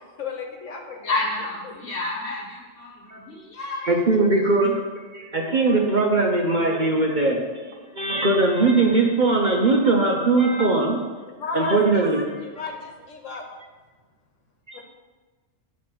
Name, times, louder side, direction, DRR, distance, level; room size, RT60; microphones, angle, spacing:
voice 1, 0.0-1.1 1.6-1.7 11.3-12.1 12.4-13.5 14.7-14.9, left 4 dB, 70° left, 2 dB, 1.3 m, -33 dB
voice 2, 1.0-3.9 4.4-4.7, left 2 dB, 45° left, -2 dB, 1.4 m, -30 dB
voice 3, 3.8-4.7 5.1-11.0 11.5-12.4 14.7-14.8, right 3 dB, 45° right, 0 dB, 0.8 m, -20 dB
9.3 x 3.1 x 5.9 m, 1.3 s
omnidirectional pair, 1.4 m